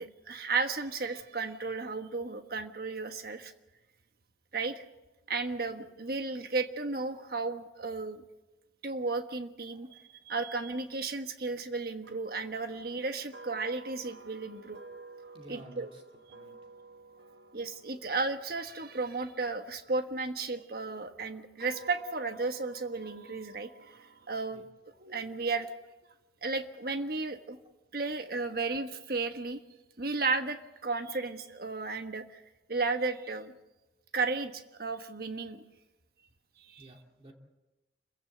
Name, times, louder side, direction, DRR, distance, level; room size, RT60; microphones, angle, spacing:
voice 1, 0.0-3.5 4.5-4.8 5.3-8.2 8.8-14.8 15.5-15.9 17.5-23.7 24.3-24.6 25.0-25.7 26.4-27.6 27.9-29.6 30.0-32.4 32.7-33.5 34.1-35.6 36.6-36.9, right 3 dB, 55° right, 8 dB, 1.4 m, -34 dB
sound 1, 12.0-20.2 20.9-24.4, right 3 dB, 85° right, 1.3 m, -53 dB
voice 2, 15.3-16.0 16.3-16.8 17.2-17.3 24.5-24.7 36.8-37.3, right 1 dB, 30° right, 2 dB, 2.4 m, -53 dB
27.0 x 15.5 x 7.7 m, 1.0 s
head